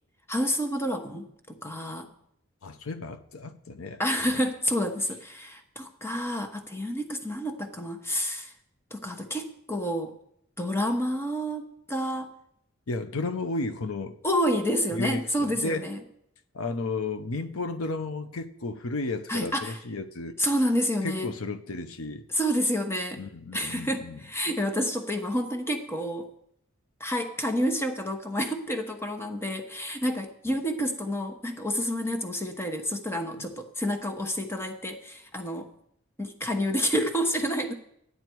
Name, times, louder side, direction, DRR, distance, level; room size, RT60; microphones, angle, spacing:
voice 1, 0.3-2.1 4.0-8.5 8.9-10.1 10.6-12.3 14.2-16.0 19.3-19.8 20.4-21.3 22.3-23.2 23.5-26.3 27.0-35.7 36.2-37.7, equal, 10° left, 1.0 m, -29 dB
voice 2, 2.6-4.4 12.9-14.2 14.9-15.9 16.5-20.4 21.0-22.3 23.2-24.2, left 3 dB, 85° left, 0.8 m, -33 dB
12.5 x 9.4 x 4.6 m
head